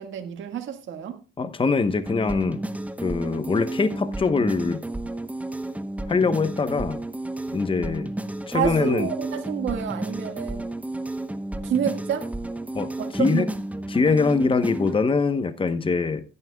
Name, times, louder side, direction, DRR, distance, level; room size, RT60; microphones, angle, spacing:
voice 1, 0.0-1.2 7.5-7.6 8.5-10.7 11.6-12.3 13.0-13.5, right 9 dB, 75° right, 1.7 m, -29 dB
voice 2, 1.4-2.6 3.0-4.8 6.1-7.0 7.5-8.1 8.5-9.1 12.7-13.4 13.9-16.2, left 4 dB, 25° left, 0.9 m, -23 dB
sound 1, 2.1-15.0, right 1 dB, 5° right, 0.9 m, -32 dB
16.0 x 9.6 x 2.3 m
cardioid pair, 90°, 20 cm